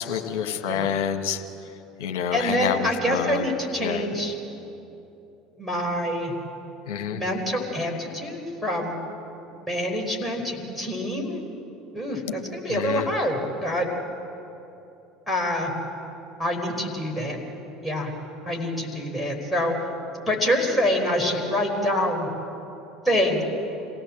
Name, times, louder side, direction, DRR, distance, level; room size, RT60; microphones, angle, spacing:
voice 1, 0.0-1.4 2.0-3.5 3.8-4.1 6.9-7.2 12.7-13.1, left 8 dB, 60° left, 6 dB, 1.5 m, -27 dB
voice 2, 2.3-4.3 5.6-6.3 7.1-9.0 9.5-11.4 11.9-13.9 15.3-15.7 16.4-17.4 17.8-18.1 18.4-19.7 20.1-22.3 23.0-23.4, equal, 5° left, -1 dB, 5.1 m, -26 dB
27.5 x 17.5 x 7.6 m, 2.9 s
figure-of-eight pair, 65°, 0 cm